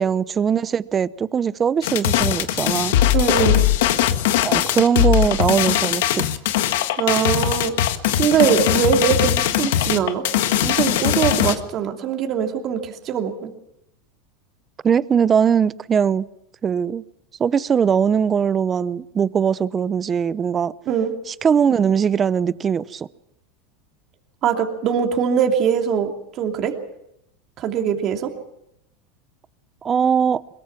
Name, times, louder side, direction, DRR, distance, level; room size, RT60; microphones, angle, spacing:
voice 1, 0.0-3.0 4.4-6.2 14.8-16.3 16.6-17.0 17.4-20.7 21.3-23.1 29.8-30.4, right 7 dB, 25° right, 18 dB, 0.7 m, -20 dB
sound 1, 1.8-11.6, left 11 dB, 75° left, 1.6 m, -20 dB
voice 2, 3.1-3.6 7.0-7.7 8.2-10.2 10.6-13.5 20.9-21.1 24.4-26.7 27.6-28.3, right 8 dB, 40° right, 3 dB, 2.9 m, -22 dB
22.5 x 22.0 x 5.9 m, 0.80 s
supercardioid pair, 135°, 0 cm